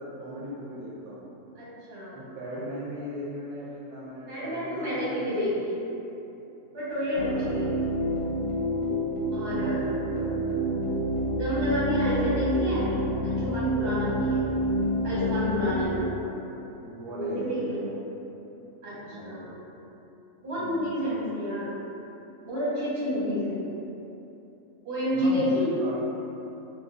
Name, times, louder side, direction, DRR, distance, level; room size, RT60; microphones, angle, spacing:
voice 1, 0.0-1.3 2.1-5.3 7.1-7.6 9.6-10.5 14.8-16.5 16.8-17.9 19.1-19.6 20.6-21.0 25.1-26.0, equal, 75° right, -7 dB, 1.0 m, -38 dB
voice 2, 1.6-2.2 4.3-5.8 6.7-7.7 9.3-9.8 11.2-13.0 13.2-14.5 15.0-16.1 17.1-17.8 18.8-19.5 20.4-21.8 22.4-23.6 24.8-25.7, equal, 45° right, -9 dB, 1.1 m, -29 dB
sound 1, 7.2-16.0, equal, 80° left, 1.2 m, -28 dB
3.7 x 2.6 x 2.3 m, 3.0 s
omnidirectional pair, 1.6 m